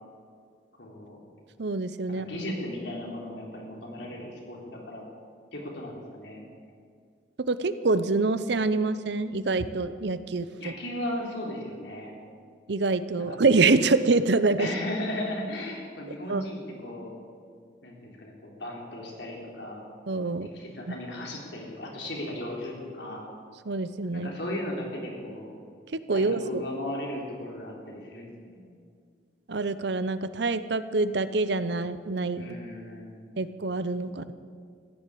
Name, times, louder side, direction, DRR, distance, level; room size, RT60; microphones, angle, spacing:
voice 1, 0.8-1.2 2.1-5.0 5.5-6.4 10.6-12.1 13.3-13.4 14.6-17.1 17.8-19.9 20.4-23.2 24.1-25.5 26.1-28.8 32.4-33.2, left 1 dB, 70° left, -1 dB, 3.7 m, -36 dB
voice 2, 1.6-2.3 7.5-10.7 12.7-14.7 16.3-16.4 20.1-20.5 20.9-21.0 23.7-24.3 25.9-26.6 29.5-32.6 33.4-34.3, right 3 dB, 65° right, 13 dB, 0.7 m, -26 dB
15.0 x 11.0 x 8.5 m, 2.1 s
head